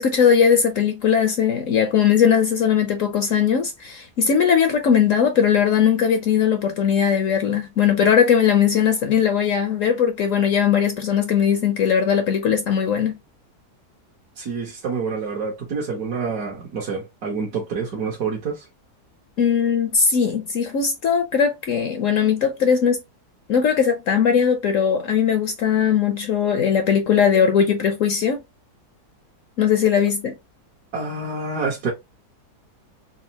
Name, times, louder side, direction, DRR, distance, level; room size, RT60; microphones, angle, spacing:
voice 1, 0.0-13.2 19.4-23.0 23.5-28.4 29.6-30.4, left 7 dB, 65° left, 0.9 m, -19 dB
voice 2, 14.4-18.7 30.9-31.9, right 4 dB, 65° right, 1.5 m, -27 dB
4.1 x 2.4 x 2.8 m
omnidirectional pair, 1.7 m